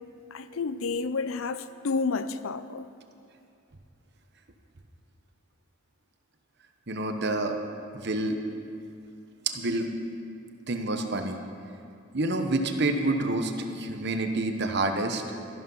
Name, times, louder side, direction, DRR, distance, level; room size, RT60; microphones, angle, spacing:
voice 1, 0.3-2.9, left 4 dB, 75° left, 0.5 m, -30 dB
voice 2, 6.9-7.6 7.9-8.4 9.5-9.9 10.7-11.4 12.1-15.2, right 2 dB, 55° right, 1.1 m, -28 dB
13.5 x 11.5 x 5.6 m
head